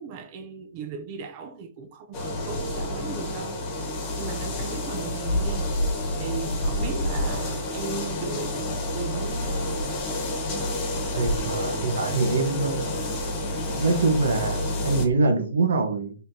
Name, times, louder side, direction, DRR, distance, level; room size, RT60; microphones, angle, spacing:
voice 1, 0.0-3.6 4.2-9.8, right 6 dB, 35° right, 0.5 m, -37 dB
sound 1, 2.1-15.1, left 1 dB, 25° left, 1.4 m, -29 dB
voice 2, 11.1-12.9 13.8-16.1, right 3 dB, 80° right, 1.1 m, -24 dB
4.3 x 3.4 x 2.7 m
hypercardioid pair, 155°, 0 cm